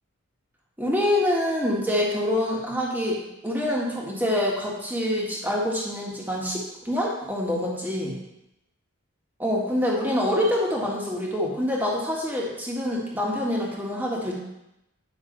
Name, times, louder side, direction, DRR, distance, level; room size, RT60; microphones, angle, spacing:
voice 1, 0.8-8.1 9.4-14.3, left 1 dB, 10° right, -3 dB, 1.6 m, -26 dB
9.5 x 6.0 x 3.9 m, 0.88 s
head